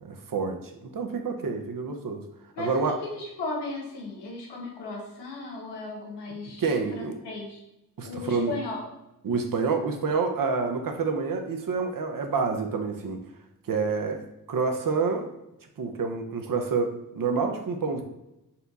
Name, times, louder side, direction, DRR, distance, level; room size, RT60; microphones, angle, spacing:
voice 1, 0.0-2.2 2.6-3.0 6.3-7.2 8.0-8.6 9.2-13.2 13.7-14.2 14.5-15.3 15.8-18.0, right 4 dB, 55° right, 5 dB, 0.8 m, -28 dB
voice 2, 2.6-6.6 6.9-7.6 8.0-8.8, left 3 dB, 85° left, -1 dB, 1.0 m, -36 dB
4.3 x 2.3 x 4.0 m, 0.87 s
supercardioid pair, 40°, 40 cm